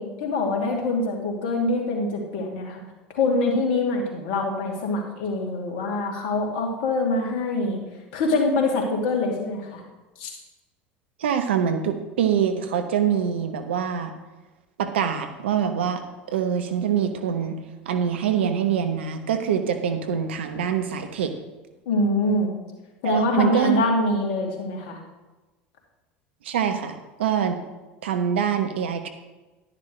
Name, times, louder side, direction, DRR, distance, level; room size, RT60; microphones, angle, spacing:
voice 1, 0.0-2.8 3.1-7.8 8.1-9.8 10.2-10.3 21.9-22.5 23.0-25.0, left 2 dB, 70° left, 0 dB, 2.6 m, -24 dB
voice 2, 11.2-14.1 14.8-16.0 16.3-17.6 17.8-21.3 23.0-23.8 26.4-27.6 28.0-29.1, right 8 dB, 80° right, 8 dB, 1.1 m, -24 dB
11.5 x 10.5 x 3.3 m, 1.1 s
hypercardioid pair, 75°, 6 cm